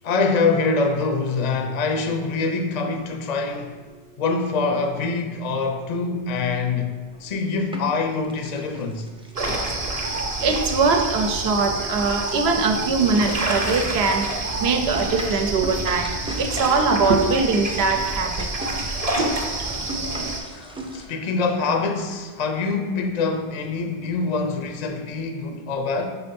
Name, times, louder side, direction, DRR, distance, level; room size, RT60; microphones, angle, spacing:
voice 1, 0.0-3.8 4.2-6.9 7.2-9.1 20.5-26.0, left 4 dB, 50° left, 0.6 m, -24 dB
sound 1, 7.1-8.0 8.3-21.1, right 1 dB, 5° right, 0.5 m, -38 dB
sound 2, 9.4-20.4, right 2 dB, 40° right, 0.8 m, -28 dB
voice 2, 10.4-16.1 16.4-18.5, right 4 dB, 70° right, 0.9 m, -22 dB
5.0 x 4.3 x 5.2 m
omnidirectional pair, 1.1 m